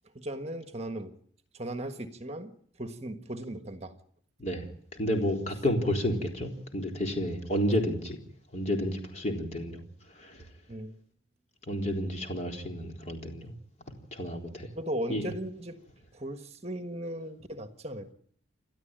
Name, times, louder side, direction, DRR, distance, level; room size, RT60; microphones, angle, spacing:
voice 1, 0.1-1.1 1.5-2.5 2.8-3.9 10.7-11.0 14.7-15.8 16.1-18.1, right 1 dB, 30° right, 8 dB, 1.6 m, -37 dB
voice 2, 5.0-8.2 8.5-9.8 10.2-10.4 11.7-13.5 14.1-14.7 15.1-15.2, equal, 35° left, 2 dB, 3.9 m, -30 dB
29.0 x 12.5 x 9.0 m, 0.63 s
head